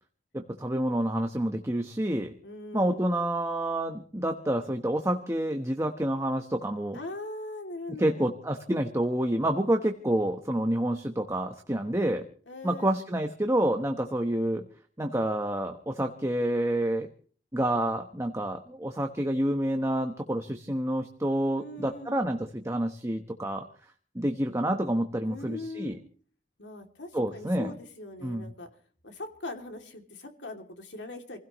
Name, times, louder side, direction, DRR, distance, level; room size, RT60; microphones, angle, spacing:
voice 1, 0.3-2.3 2.7-7.0 8.0-12.2 12.6-14.6 15.0-17.1 17.5-23.6 24.1-26.0 27.1-27.7 28.2-28.5, right 1 dB, 15° right, 4 dB, 1.1 m, -28 dB
voice 2, 2.4-3.2 6.9-8.3 12.5-12.9 21.6-22.2 25.2-26.0 26.6-28.7 29.0-31.4, left 2 dB, 85° left, 4 dB, 2.8 m, -41 dB
28.0 x 16.5 x 3.1 m, 0.44 s
head